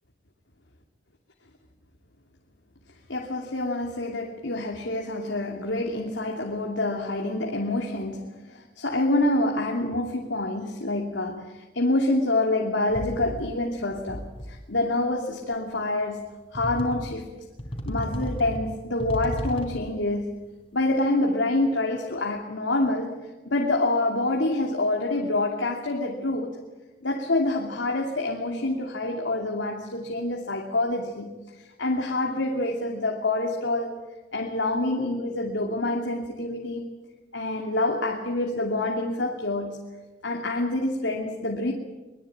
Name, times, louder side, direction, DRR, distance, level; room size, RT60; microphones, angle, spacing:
voice 1, 3.1-17.3 17.9-20.4 20.7-23.2 23.5-26.5 27.0-34.1 34.3-36.9 37.3-39.8 40.2-41.7, left 2 dB, 80° left, 1 dB, 2.8 m, -27 dB
sound 1, 12.9-13.6 13.9-14.7 15.5-15.6 16.5-17.2 17.6-19.9, equal, 30° left, 4.2 m, -34 dB
24.5 x 22.5 x 8.8 m, 1.2 s
head